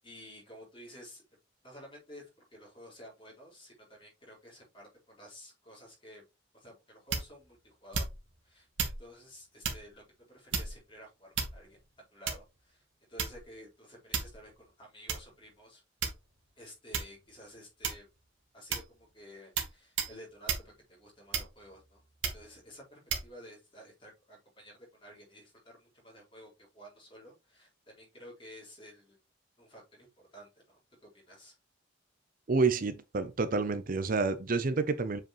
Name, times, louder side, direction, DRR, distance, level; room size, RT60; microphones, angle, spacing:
voice 1, 0.0-1.4 1.6-6.2 6.5-8.0 8.4-11.8 12.1-15.8 16.6-18.1 18.5-22.1 22.3-29.2 29.6-31.5, equal, 30° left, 4.1 m, -52 dB
sound 1, 7.1-7.5 7.9-8.3 8.8-9.0 9.6-9.9 10.5-10.9 11.3-11.8 12.3-12.6 13.2-13.5 14.1-14.4 15.1-15.2 16.0-16.4 16.9-17.2 17.8-18.2 18.7-18.9 19.6-19.7 20.0-20.2 20.5-20.7 21.3-21.7 22.2-22.5 23.1-23.3, right 6 dB, 90° right, 1.7 m, -33 dB
voice 2, 32.5-35.2, right 4 dB, 45° right, 0.6 m, -29 dB
7.5 x 5.0 x 3.1 m
head